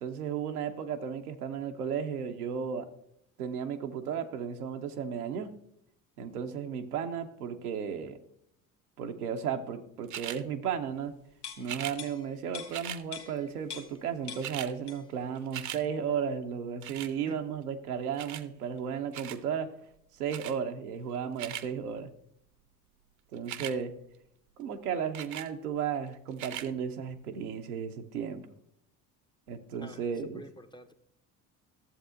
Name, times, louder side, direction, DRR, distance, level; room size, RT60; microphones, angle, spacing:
voice 1, 0.0-2.9 3.4-5.5 6.2-8.2 9.0-11.1 11.6-19.7 20.1-22.1 23.3-23.9 24.6-28.4 29.5-30.4, right 7 dB, 85° right, 6 dB, 0.7 m, -34 dB
sound 1, 10.1-10.4 11.6-12.0 12.7-13.0 14.0-14.1 14.2-14.7 15.1-15.8 16.8-17.1 18.2-18.5 19.1-19.4 20.3-20.6 21.2-21.7 23.4-23.8 25.1-25.5 26.3-26.7 27.3-27.4, right 12 dB, 40° right, 0.6 m, -39 dB
sound 2, 11.4-14.0 14.3-15.2 15.6-15.7, left 7 dB, 70° left, 1.2 m, -45 dB
voice 2, 29.8-30.9, left 1 dB, 10° left, 8 dB, 0.5 m, -49 dB
12.5 x 7.3 x 2.5 m, 0.73 s
hypercardioid pair, 60°, 44 cm